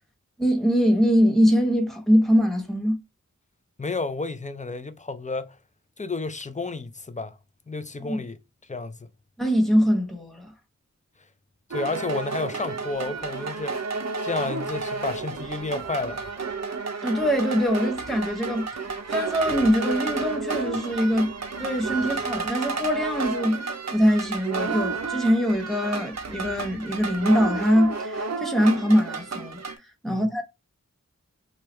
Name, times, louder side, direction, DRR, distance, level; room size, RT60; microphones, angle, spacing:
voice 1, 0.4-3.0 8.0-8.2 9.4-10.5 17.0-21.3 21.6-29.6 30.0-30.4, equal, ahead, 0.9 m, -23 dB
voice 2, 3.8-5.6 6.0-7.4 7.7-8.4 8.7-9.1 11.7-13.9 14.2-16.3 30.1-30.3, left 3 dB, 25° left, 0.4 m, -31 dB
sound 1, 11.7-29.8, right 3 dB, 60° right, 0.6 m, -31 dB
3.1 x 2.3 x 3.0 m
wide cardioid pair, 45°, 31 cm